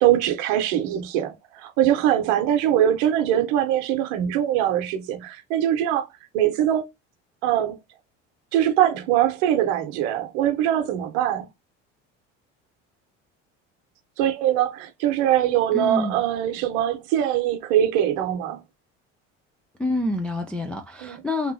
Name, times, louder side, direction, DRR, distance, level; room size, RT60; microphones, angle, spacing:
voice 1, 0.0-6.0 6.3-6.9 7.4-7.8 8.5-11.5 14.2-18.6 21.0-21.2, right 11 dB, 70° right, 0.9 m, -22 dB
voice 2, 15.7-16.2 19.8-21.5, left 1 dB, 5° left, 0.3 m, -27 dB
2.9 x 2.6 x 2.6 m
hypercardioid pair, 70°, 36 cm